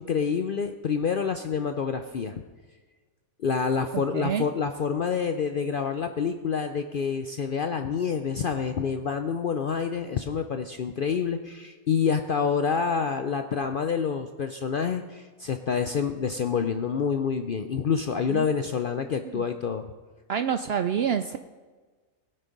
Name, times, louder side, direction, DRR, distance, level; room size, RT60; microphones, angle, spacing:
voice 1, 0.0-2.4 3.4-19.9, left 6 dB, 60° left, 7 dB, 0.5 m, -27 dB
voice 2, 4.1-4.5 18.3-18.5 19.2-19.5 20.3-21.4, right 8 dB, 65° right, 9 dB, 0.6 m, -27 dB
19.5 x 6.6 x 5.2 m, 1.4 s
omnidirectional pair, 1.5 m